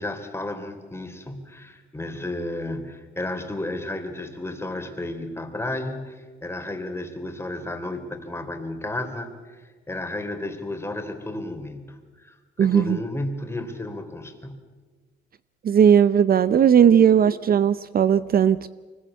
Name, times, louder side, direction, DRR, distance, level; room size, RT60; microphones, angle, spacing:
voice 1, 0.0-14.6 16.4-16.7 17.1-17.2, left 1 dB, 10° left, 3.6 m, -33 dB
voice 2, 12.6-13.0 15.6-18.7, right 8 dB, 50° right, 0.6 m, -17 dB
24.0 x 21.0 x 8.4 m
cardioid pair, 90°, 20 cm